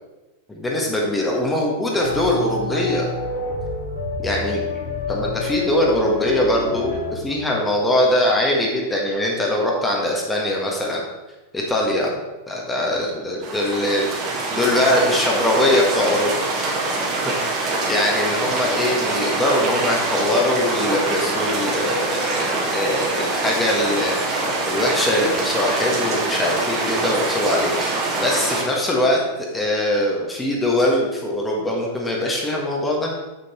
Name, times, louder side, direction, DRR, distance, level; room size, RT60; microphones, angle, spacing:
voice 1, 0.5-3.0 4.2-4.6 5.1-11.0 11.5-12.1 12.5-16.4 17.2-29.2 29.5-33.1, left 1 dB, 10° left, -2 dB, 1.4 m, -22 dB
sound 1, 2.0-7.1, left 3 dB, 60° left, 2.1 m, -28 dB
sound 2, 13.4-28.6, right 2 dB, 35° right, 1.9 m, -24 dB
7.5 x 6.6 x 4.3 m, 1.1 s
figure-of-eight pair, 90°, 0 cm